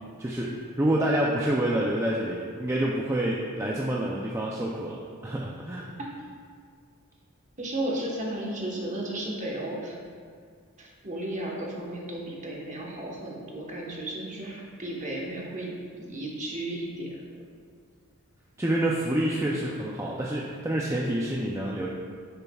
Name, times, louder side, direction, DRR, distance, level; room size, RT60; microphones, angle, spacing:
voice 1, 0.2-5.9 18.6-21.9, right 1 dB, 15° right, -3 dB, 0.4 m, -27 dB
voice 2, 7.6-10.0 10.8-17.4, right 1 dB, 35° right, -3 dB, 1.2 m, -34 dB
10.0 x 6.6 x 2.3 m, 2.1 s
head